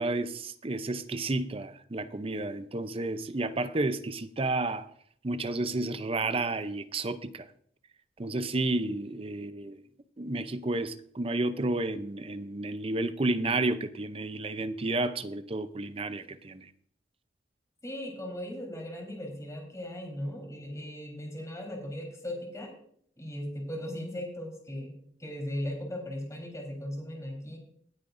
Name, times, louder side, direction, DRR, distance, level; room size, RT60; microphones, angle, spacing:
voice 1, 0.0-4.9 5.2-7.4 8.2-9.8 10.2-16.7, right 2 dB, 35° right, 0.6 m, -31 dB
voice 2, 17.8-22.7 23.2-24.9 25.2-27.6, left 1 dB, 20° left, 3.8 m, -38 dB
19.5 x 8.6 x 2.6 m
head